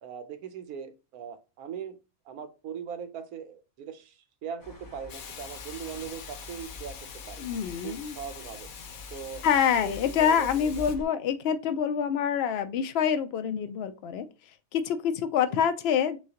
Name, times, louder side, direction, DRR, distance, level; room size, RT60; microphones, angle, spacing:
voice 1, 0.0-2.0 2.3-7.0 7.3-7.4 7.8-8.7 9.1-9.4 9.8-10.9 15.5-15.6, right 7 dB, 90° right, 1.2 m, -40 dB
sound 1, 4.6-11.0, left 3 dB, 20° left, 0.6 m, -46 dB
Hiss, 5.1-11.0, left 6 dB, 85° left, 1.2 m, -44 dB
voice 2, 7.4-8.1 9.4-14.3 14.7-16.2, left 8 dB, 65° left, 0.6 m, -26 dB
6.2 x 2.3 x 2.8 m
omnidirectional pair, 1.5 m